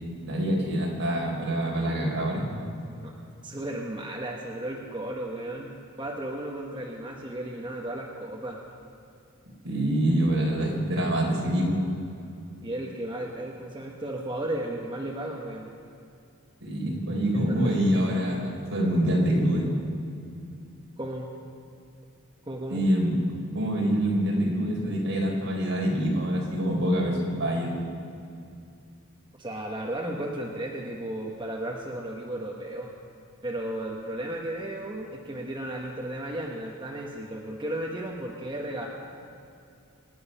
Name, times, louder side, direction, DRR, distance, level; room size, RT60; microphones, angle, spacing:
voice 1, 0.3-2.5 9.6-11.8 16.6-19.7 22.7-23.2 23.5-27.8, equal, 60° right, -2 dB, 4.2 m, -25 dB
voice 2, 3.4-8.6 12.6-15.7 17.3-17.6 21.0-21.3 22.5-22.9 29.4-32.9 33.4-38.9, right 1 dB, 20° right, -2 dB, 1.1 m, -34 dB
26.0 x 9.5 x 5.5 m, 2.5 s
head